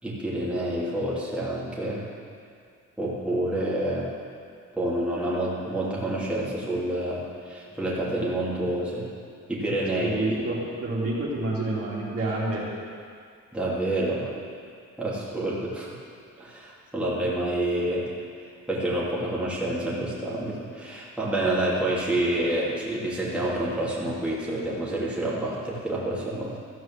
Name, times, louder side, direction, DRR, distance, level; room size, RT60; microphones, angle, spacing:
voice 1, 0.0-2.0 3.0-4.1 4.7-9.1 9.5-10.4 13.5-14.3 15.0-15.9 16.4-18.1 18.7-26.6, right 1 dB, 5° right, -7 dB, 2.8 m, -28 dB
voice 2, 10.0-12.6 15.1-15.2, right 2 dB, 50° right, -5 dB, 2.9 m, -28 dB
14.0 x 4.8 x 7.6 m, 2.2 s
cardioid pair, 90°, 30 cm